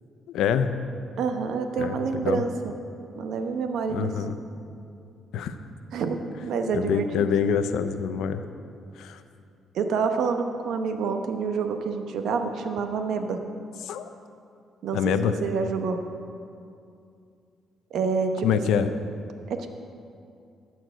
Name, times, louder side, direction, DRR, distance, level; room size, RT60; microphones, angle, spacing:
voice 1, 0.3-0.7 1.8-2.0 2.2-2.4 3.9-4.4 5.3-5.5 6.7-8.4 9.0-9.2 13.8-14.1 14.9-15.3 18.4-18.9, left 7 dB, 85° left, 10 dB, 0.6 m, -25 dB
voice 2, 1.2-2.7 3.1-4.1 5.9-7.1 7.5-7.6 9.7-13.4 14.8-16.0 17.9-18.5 19.5-19.7, right 5 dB, 75° right, 6 dB, 0.9 m, -27 dB
14.0 x 4.6 x 7.9 m, 2.5 s
cardioid pair, 90°, 0 cm